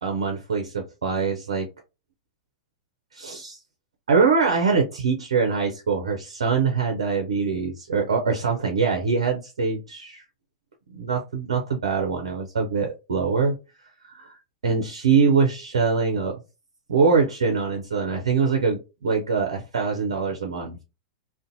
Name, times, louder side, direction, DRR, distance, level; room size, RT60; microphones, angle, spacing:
voice 1, 0.0-1.7 3.1-3.6 4.1-10.2 10.9-13.6 14.0-14.4 14.6-16.4 16.9-20.8, right 5 dB, 80° right, 3 dB, 0.5 m, -23 dB
2.5 x 2.2 x 2.6 m, 0.28 s
hypercardioid pair, 100°, 3 cm